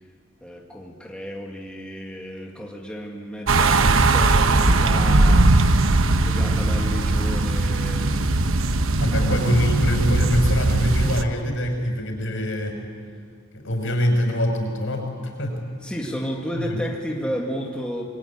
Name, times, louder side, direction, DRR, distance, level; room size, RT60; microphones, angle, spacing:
voice 1, 0.4-5.5 6.2-8.3 9.2-9.3 15.8-18.0, equal, 5° left, -1 dB, 2.1 m, -32 dB
sound 1, 3.5-11.2, right 2 dB, 75° right, 1.1 m, -19 dB
voice 2, 9.0-12.8 13.5-15.6 16.6-16.8, equal, 65° left, 4 dB, 5.8 m, -24 dB
26.5 x 21.5 x 9.9 m, 2.1 s
head